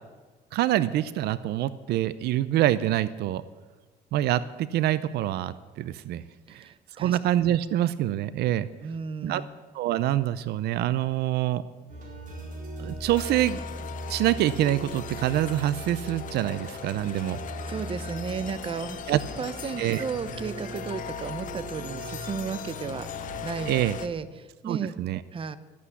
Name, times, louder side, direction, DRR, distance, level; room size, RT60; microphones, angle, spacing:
voice 1, 0.5-3.4 4.1-6.2 6.5-6.7 7.0-8.7 9.2-9.4 9.7-11.6 12.8-13.6 14.1-17.4 19.1-19.2 19.8-20.0 23.7-24.0 24.7-25.2, right 13 dB, 75° right, 16 dB, 0.6 m, -26 dB
voice 2, 6.5-7.2 8.8-9.5 16.9-17.2 17.6-23.1 23.4-25.0 25.3-25.6, right 6 dB, 30° right, 14 dB, 0.7 m, -34 dB
sound 1, 11.9-24.0, right 2 dB, 50° right, 4.3 m, -40 dB
sound 2, 13.1-24.1, left 11 dB, 50° left, 0.7 m, -39 dB
13.5 x 8.5 x 8.2 m, 1.3 s
cardioid pair, 110°, 17 cm